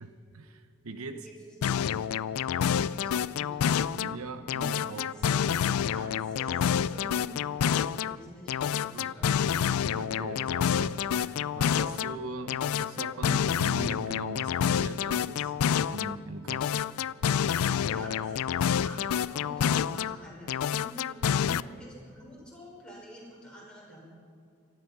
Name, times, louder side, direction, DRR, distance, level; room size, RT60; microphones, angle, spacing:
voice 1, 0.0-1.3 3.9-5.1 8.9-9.1 9.9-16.8, right 3 dB, 75° right, 9 dB, 0.9 m, -41 dB
voice 2, 1.1-1.7 2.5-3.6 4.9-9.6 17.8-24.0, equal, 5° left, -5 dB, 5.2 m, -48 dB
sound 1, 1.6-4.2 4.5-8.2 8.5-12.2 12.5-16.2 16.5-20.2 20.5-21.6, left 8 dB, 80° left, 0.4 m, -28 dB
18.5 x 13.0 x 5.8 m, 2.4 s
head